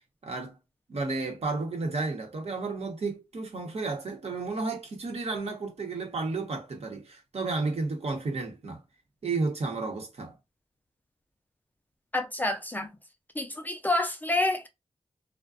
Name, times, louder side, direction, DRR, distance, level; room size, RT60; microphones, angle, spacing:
voice 1, 0.2-0.6 0.9-8.8 9.2-10.3, right 3 dB, 65° right, 0.9 m, -32 dB
voice 2, 12.1-12.9 13.4-14.7, left 2 dB, 15° left, 0.4 m, -28 dB
2.4 x 2.2 x 2.4 m
wide cardioid pair, 115°, 12 cm